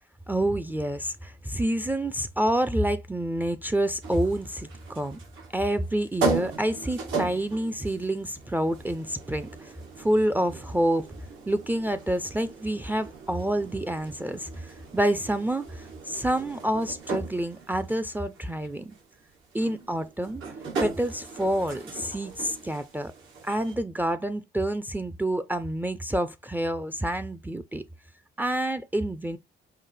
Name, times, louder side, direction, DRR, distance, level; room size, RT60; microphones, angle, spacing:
voice 1, 0.3-5.2 5.5-11.1 11.5-19.0 19.5-20.4 20.8-23.1 23.4-27.8 28.4-29.4, right 1 dB, 10° right, 0.4 m, -28 dB
sound 1, 4.0-23.7, right 4 dB, 85° right, 1.8 m, -37 dB
5.5 x 2.1 x 3.3 m
cardioid pair, 90°, 20 cm